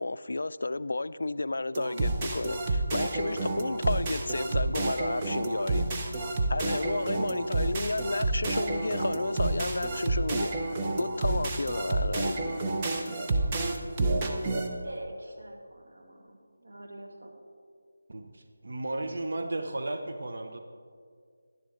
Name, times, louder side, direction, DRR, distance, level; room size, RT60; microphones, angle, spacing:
voice 1, 0.0-5.9 6.5-10.5 11.0-12.6, left 2 dB, 70° left, 0.3 m, -32 dB
sound 1, 1.7-14.7, right 2 dB, 20° right, 0.7 m, -29 dB
voice 2, 14.7-17.3, right 1 dB, 85° right, 2.0 m, -45 dB
voice 3, 18.1-20.6, right 2 dB, 60° right, 0.8 m, -34 dB
11.5 x 10.5 x 3.8 m
figure-of-eight pair, 170°, 0 cm